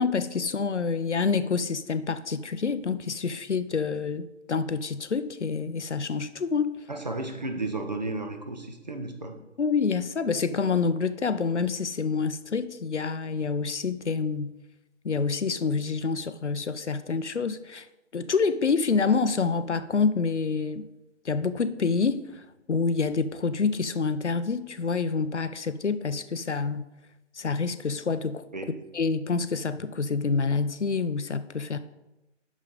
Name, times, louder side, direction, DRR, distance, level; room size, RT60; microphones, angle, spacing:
voice 1, 0.0-6.7 9.6-14.5 15.0-17.9 18.1-20.8 21.2-22.4 22.7-26.9 27.4-28.4 28.9-31.8, left 5 dB, 65° left, 12 dB, 0.6 m, -27 dB
voice 2, 6.9-9.3 28.5-28.8, right 2 dB, 35° right, 5 dB, 0.9 m, -33 dB
6.5 x 6.4 x 5.4 m, 0.96 s
figure-of-eight pair, 160°, 37 cm